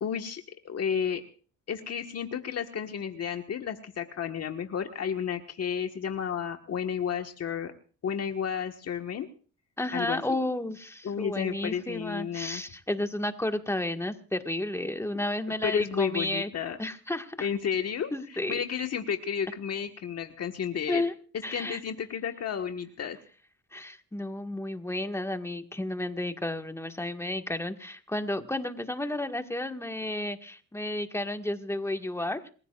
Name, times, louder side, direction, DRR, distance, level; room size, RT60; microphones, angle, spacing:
voice 1, 0.0-1.2 1.7-7.7 8.0-9.3 9.9-10.4 11.0-12.6 15.1-15.2 15.6-16.8 17.4-21.0 21.5-23.2, left 7 dB, 55° left, 5 dB, 1.5 m, -32 dB
voice 2, 9.8-16.5 16.8-17.5 18.1-18.6 20.9-21.1 21.4-21.8 23.7-32.5, left 1 dB, 10° left, 6 dB, 1.7 m, -32 dB
27.5 x 15.5 x 2.5 m, 0.40 s
cardioid pair, 90°, 30 cm